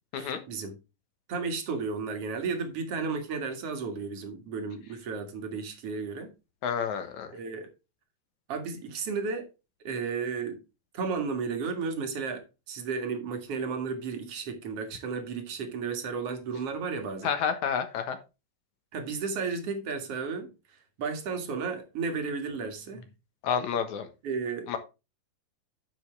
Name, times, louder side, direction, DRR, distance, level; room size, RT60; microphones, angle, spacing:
voice 1, 0.2-0.7 1.3-6.3 7.3-7.7 8.5-9.5 9.8-10.6 10.9-17.3 18.9-23.1 24.2-24.8, right 5 dB, 50° right, 2.6 m, -33 dB
voice 2, 6.6-7.3 17.2-18.2 23.4-24.1 24.7-24.8, left 7 dB, 65° left, 2.4 m, -29 dB
10.5 x 7.2 x 3.3 m
omnidirectional pair, 4.0 m